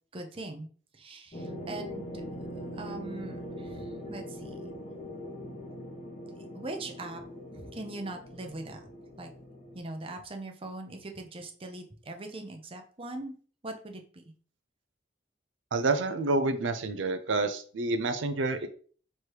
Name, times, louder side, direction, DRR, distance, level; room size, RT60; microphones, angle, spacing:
voice 1, 0.1-0.7 0.9-2.2 2.7-4.7 6.5-7.2 7.5-8.9 9.2-9.3 9.7-13.3 13.6-14.3, right 2 dB, 30° right, 4 dB, 0.6 m, -41 dB
sound 1, 1.3-9.8, equal, 35° left, 1.0 m, -41 dB
voice 2, 15.7-18.7, right 3 dB, 85° right, 9 dB, 0.5 m, -28 dB
3.3 x 3.0 x 4.6 m, 0.43 s
head